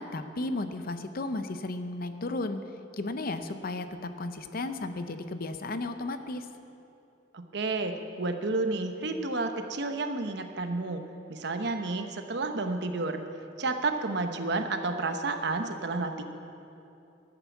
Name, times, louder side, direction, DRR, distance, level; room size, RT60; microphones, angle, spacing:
voice 1, 0.0-2.6 3.0-6.5, left 2 dB, 50° left, 9 dB, 0.6 m, -34 dB
voice 2, 7.3-11.0 11.3-13.2 13.6-16.2, right 3 dB, 60° right, 6 dB, 0.9 m, -31 dB
11.5 x 9.2 x 7.2 m, 2.8 s
head